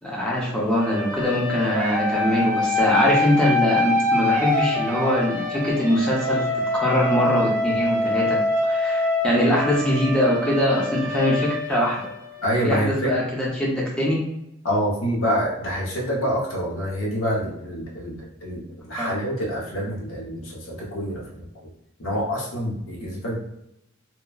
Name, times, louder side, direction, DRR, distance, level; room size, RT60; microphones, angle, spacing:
voice 1, 0.0-6.4 6.8-12.1 12.6-14.2 19.0-19.1, equal, 5° left, -5 dB, 0.6 m, -22 dB
sound 1, 0.8-12.6, left 2 dB, 45° right, 0.4 m, -25 dB
voice 2, 12.4-13.1 14.6-21.7 22.0-23.4, equal, 75° left, -3 dB, 0.9 m, -27 dB
3.0 x 2.1 x 2.3 m, 0.84 s
head